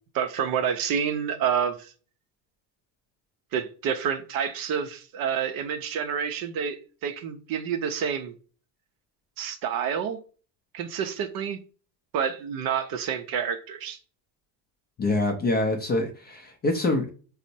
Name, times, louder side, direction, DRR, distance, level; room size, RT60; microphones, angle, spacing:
voice 1, 0.1-1.9 3.5-8.3 9.4-10.2 10.7-11.6 12.1-14.0, right 7 dB, 45° right, 0.5 m, -28 dB
voice 2, 15.0-17.1, left 2 dB, 20° left, 0.4 m, -25 dB
4.2 x 2.0 x 2.7 m
supercardioid pair, 110°, 49 cm